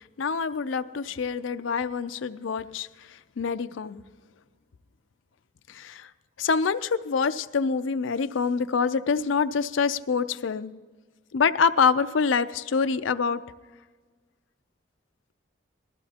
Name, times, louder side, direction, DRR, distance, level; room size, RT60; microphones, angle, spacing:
voice 1, 0.2-2.9 3.4-4.0 5.7-6.1 6.4-10.7 11.3-13.4, left 5 dB, 80° left, 11 dB, 0.5 m, -26 dB
19.5 x 14.0 x 2.9 m, 1.4 s
head